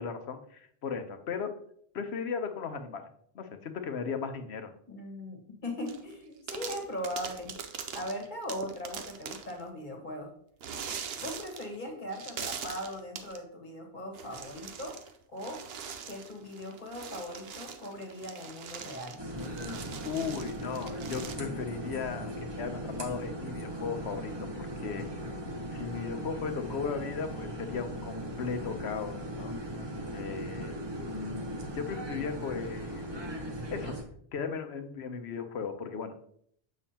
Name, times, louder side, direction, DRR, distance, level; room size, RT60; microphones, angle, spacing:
voice 1, 0.0-1.5 1.9-3.1 3.3-4.7 20.0-24.5 24.8-25.1 25.7-29.5 30.1-33.4 33.7-33.9 34.3-36.2, left 6 dB, 80° left, 8 dB, 1.1 m, -36 dB
voice 2, 4.9-7.6 7.9-10.3 11.2-15.0 15.3-15.7 16.1-19.2, left 1 dB, 50° left, 1 dB, 1.6 m, -39 dB
sound 1, 5.9-6.1 6.5-9.6 10.6-11.8 12.1-13.4 14.1-15.1 15.4-21.4, right 7 dB, 70° right, 0.9 m, -42 dB
sound 2, 19.2-34.0, right 1 dB, 25° right, 0.8 m, -38 dB
7.2 x 6.2 x 2.8 m, 0.64 s
omnidirectional pair, 1.1 m